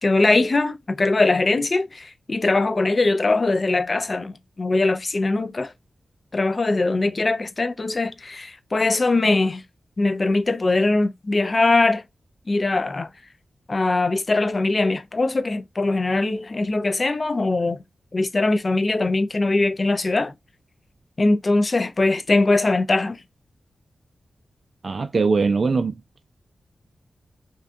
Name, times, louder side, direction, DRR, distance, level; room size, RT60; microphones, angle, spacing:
voice 1, 0.0-5.7 6.3-9.6 10.0-12.0 12.5-13.1 13.7-17.8 18.1-20.3 21.2-23.2, left 2 dB, 40° left, 0.3 m, -21 dB
voice 2, 24.8-25.9, right 4 dB, 55° right, 0.3 m, -21 dB
2.5 x 2.3 x 2.3 m
cardioid pair, 70°, 0 cm